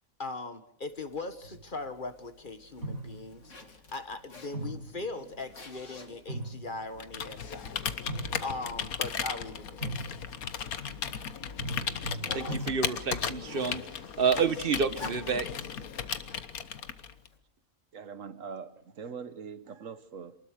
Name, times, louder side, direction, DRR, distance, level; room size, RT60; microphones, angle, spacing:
voice 1, 0.2-3.5 3.9-7.8 8.4-9.9, left 3 dB, 35° left, 10 dB, 1.6 m, -39 dB
Zipper (clothing), 0.9-17.4, left 3 dB, 60° left, 2.7 m, -51 dB
sound 1, 1.4-1.9 2.8-3.5 4.5-5.7 6.1-7.2 7.9-8.8 9.8-10.5 11.6-13.2, right 1 dB, 85° right, 8.2 m, -40 dB
Computer keyboard, 7.0-17.3, left 7 dB, 85° left, 1.6 m, -36 dB
voice 2, 12.3-13.8 14.2-15.5, right 6 dB, 40° right, 12 dB, 1.4 m, -28 dB
voice 3, 17.9-20.4, right 6 dB, 65° right, 13 dB, 1.6 m, -42 dB
27.5 x 20.5 x 6.5 m, 0.68 s
omnidirectional pair, 1.5 m